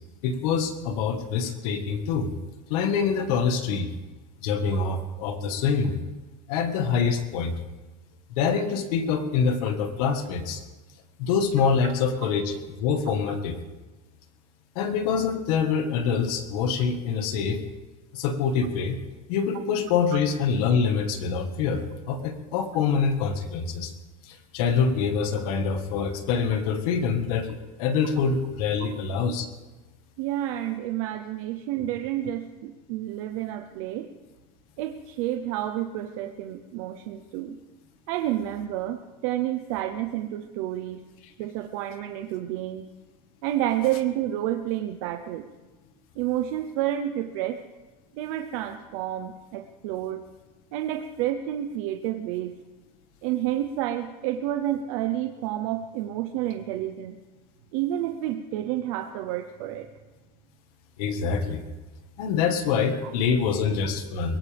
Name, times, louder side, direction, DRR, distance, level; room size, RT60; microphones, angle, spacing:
voice 1, 0.2-2.3 2.7-3.9 4.4-6.0 6.5-7.6 8.4-10.6 11.2-13.6 14.8-17.6 18.1-19.0 19.3-23.9 24.2-29.5 61.0-61.7 62.2-64.4, left 6 dB, 70° left, 7 dB, 1.8 m, -25 dB
voice 2, 30.2-34.1 34.8-37.6 38.1-41.0 41.4-42.9 43.4-45.4 46.2-47.6 48.1-50.2 50.7-52.5 53.2-57.2 57.7-59.9, right 12 dB, 65° right, 6 dB, 0.9 m, -30 dB
22.5 x 18.0 x 3.5 m, 1.2 s
cardioid pair, 175°, 20 cm